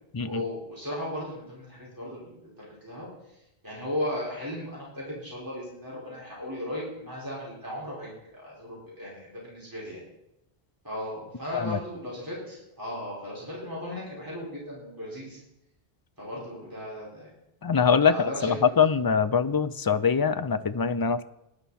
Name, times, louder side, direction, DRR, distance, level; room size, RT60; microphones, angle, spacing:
voice 1, 0.2-10.0 10.8-15.4 16.2-17.3 18.1-18.6, left 1 dB, 20° right, -6 dB, 5.1 m, -36 dB
voice 2, 17.6-21.2, left 6 dB, 35° left, 13 dB, 0.4 m, -23 dB
18.5 x 11.0 x 4.3 m, 0.85 s
omnidirectional pair, 1.0 m